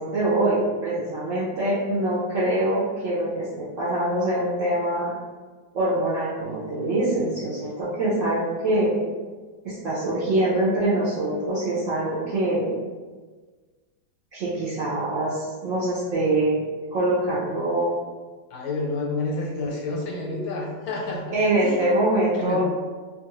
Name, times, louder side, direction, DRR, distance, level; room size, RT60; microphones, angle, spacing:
voice 1, 0.0-5.1 5.7-9.0 9.6-12.7 14.3-16.6 16.9-17.9 21.3-22.6, right 1 dB, 70° right, -9 dB, 0.7 m, -24 dB
voice 2, 18.5-21.8 22.4-22.6, left 2 dB, 80° left, -2 dB, 1.4 m, -29 dB
2.9 x 2.3 x 3.0 m, 1.4 s
omnidirectional pair, 2.0 m